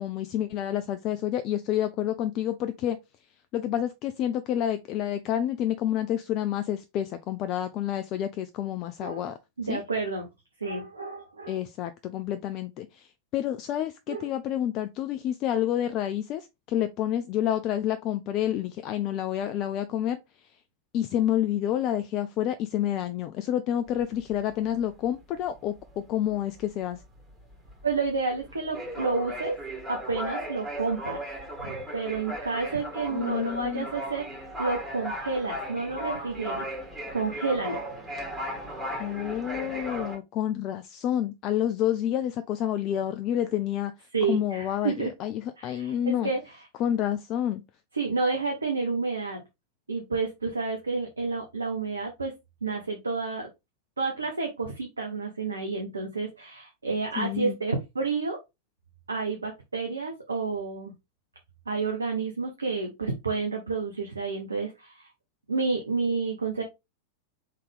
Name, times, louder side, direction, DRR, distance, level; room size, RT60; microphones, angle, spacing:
voice 1, 0.0-3.0 3.5-9.4 9.7-9.8 11.5-20.2 20.9-27.0 32.8-33.9 39.0-43.9 44.3-46.3 46.8-47.6 57.2-57.6, left 11 dB, 40° left, 0.4 m, -29 dB
voice 2, 9.6-10.3 10.6-11.6 14.1-14.3 27.8-29.5 29.9-31.2 31.6-34.2 34.6-36.6 37.1-37.8 44.1-45.1 45.6-46.6 47.9-49.4 49.9-52.3 52.6-53.5 54.0-58.4 59.1-60.9 61.7-65.1 65.5-66.6, right 4 dB, 75° right, 0.9 m, -30 dB
sound 1, 23.9-25.1 25.4-25.6 25.9-40.2, equal, 10° right, 2.1 m, -36 dB
4.1 x 3.6 x 3.5 m
figure-of-eight pair, 90°, 0 cm